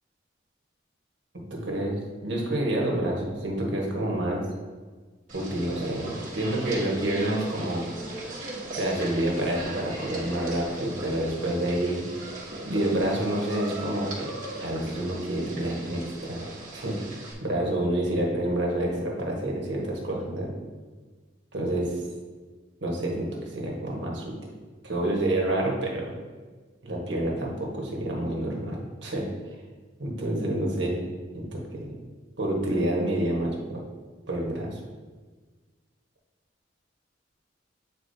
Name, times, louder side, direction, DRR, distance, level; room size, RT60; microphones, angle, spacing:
voice 1, 1.5-4.4 5.3-7.8 8.7-12.0 12.6-14.3 14.6-16.4 16.7-16.9 17.4-20.5 21.5-22.0 22.8-24.3 24.8-26.1 26.8-29.3 30.0-31.0 31.3-31.9 32.4-33.8 34.3-34.8, right 1 dB, 70° right, -2 dB, 1.4 m, -28 dB
sound 1, 5.3-17.3, right 2 dB, 45° right, 1.6 m, -38 dB
8.7 x 4.2 x 2.8 m, 1.4 s
head